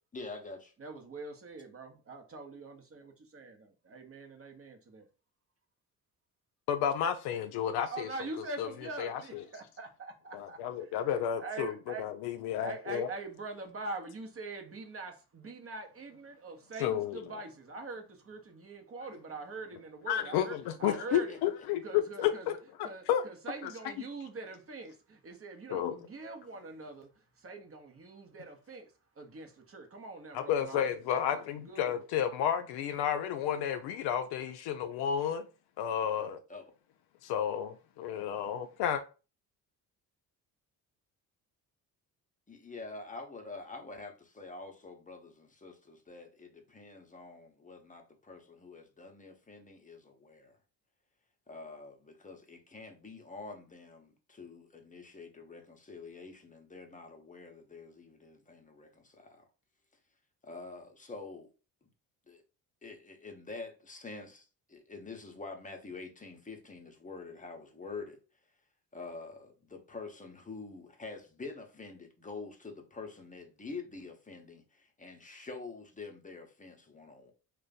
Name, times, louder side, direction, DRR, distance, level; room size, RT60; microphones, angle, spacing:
voice 1, 0.1-0.7 20.9-21.4 36.5-36.6 42.5-50.6 51.5-59.5 60.4-61.5 62.3-62.4 62.8-68.2 68.9-77.3, left 3 dB, 15° left, 0.8 m, -46 dB
voice 2, 0.8-5.0 7.9-10.6 10.9-12.0 12.6-21.4 21.8-22.5 22.8-27.1 27.4-28.9 29.2-30.9 31.3-31.9, right 3 dB, 30° right, 0.8 m, -43 dB
voice 3, 6.7-8.1 8.4-9.4 10.3-13.1 16.8-17.2 20.1-23.2 23.6-23.7 25.7-26.0 30.3-35.5 35.8-36.4 37.2-39.0, left 9 dB, 60° left, 0.5 m, -32 dB
2.4 x 2.3 x 4.0 m
hypercardioid pair, 50°, 44 cm